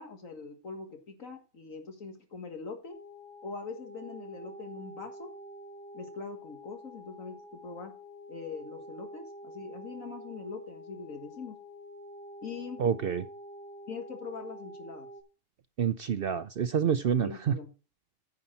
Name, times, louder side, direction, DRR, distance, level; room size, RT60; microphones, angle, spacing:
voice 1, 0.0-3.0 3.4-5.3 5.9-7.4 7.6-7.9 8.3-11.6 12.4-12.8 13.9-15.1 17.2-17.7, left 4 dB, 80° left, 4 dB, 2.1 m, -42 dB
sound 1, 2.9-15.2, equal, 5° left, 2.4 m, -47 dB
voice 2, 12.8-13.3 15.8-17.6, right 7 dB, 60° right, 12 dB, 0.7 m, -28 dB
9.8 x 7.3 x 4.3 m, 0.32 s
omnidirectional pair, 1.4 m